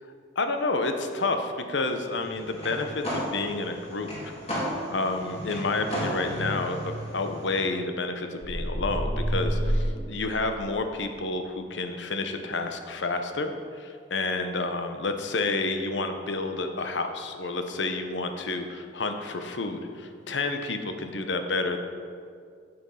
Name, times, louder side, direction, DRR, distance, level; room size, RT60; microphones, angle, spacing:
voice 1, 0.4-4.3 4.9-21.8, left 3 dB, 75° left, 6 dB, 0.9 m, -30 dB
sound 1, 2.2-7.6, equal, 35° left, 2.8 m, -34 dB
sound 2, 8.4-10.8, equal, 10° left, 2.0 m, -28 dB
8.7 x 7.8 x 5.7 m, 2.2 s
head